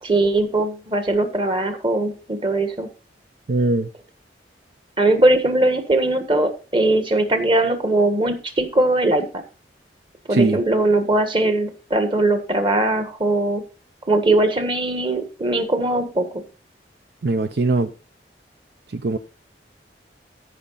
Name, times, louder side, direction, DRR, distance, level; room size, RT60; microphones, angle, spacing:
voice 1, 0.0-2.9 5.0-9.4 10.3-13.6 14.1-16.4, right 2 dB, 30° right, 1.5 m, -20 dB
voice 2, 3.5-3.9 10.3-10.6 17.2-17.9 18.9-19.2, right 2 dB, 65° right, 0.6 m, -20 dB
14.0 x 5.7 x 4.1 m
head